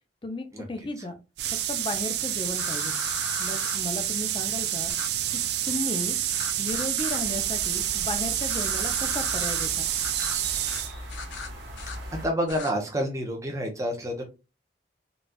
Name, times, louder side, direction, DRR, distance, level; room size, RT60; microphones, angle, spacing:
voice 1, 0.2-1.1 1.7-3.0 3.4-4.9 5.7-6.2 6.6-9.9, left 2 dB, 30° left, 7 dB, 0.5 m, -34 dB
sound 1, 1.4-10.9, right 11 dB, 65° right, 0.4 m, -28 dB
sound 2, 2.5-3.8 4.9-5.1 6.3-7.2 8.4-9.7 10.0-10.4 10.6-10.8 11.1-12.0 12.5-12.7, left 4 dB, 85° left, 0.6 m, -37 dB
sound 3, 7.1-12.3, right 1 dB, 85° right, 1.2 m, -40 dB
voice 2, 12.2-14.2, equal, 20° right, 2 dB, 0.8 m, -28 dB
4.0 x 2.3 x 2.2 m, 0.28 s
head